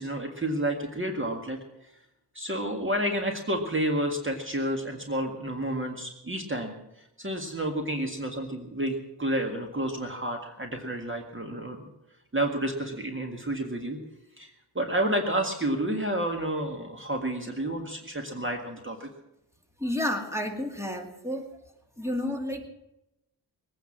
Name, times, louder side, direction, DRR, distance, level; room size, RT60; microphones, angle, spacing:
voice 1, 0.0-1.6 2.4-6.8 7.2-11.9 12.3-14.0 14.4-19.1, right 1 dB, 30° right, 3 dB, 1.9 m, -30 dB
voice 2, 19.8-21.5 22.0-22.7, left 1 dB, 5° right, 3 dB, 2.3 m, -31 dB
21.0 x 9.3 x 7.5 m, 0.89 s
wide cardioid pair, 110°, 43 cm